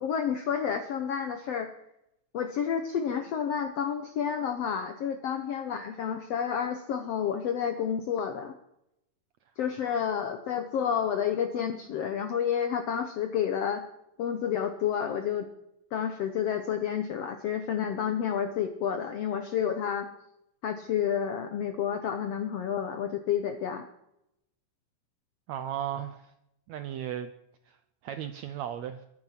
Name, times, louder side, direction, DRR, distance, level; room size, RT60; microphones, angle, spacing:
voice 1, 0.0-1.7 2.3-8.5 9.6-13.8 14.2-15.5 15.9-20.1 20.6-23.8, left 8 dB, 75° left, 7 dB, 1.4 m, -30 dB
voice 2, 25.5-26.3 26.7-27.3 27.7-27.8 28.0-29.1, right 10 dB, 80° right, 10 dB, 1.6 m, -35 dB
22.5 x 8.7 x 5.8 m, 0.83 s
omnidirectional pair, 4.0 m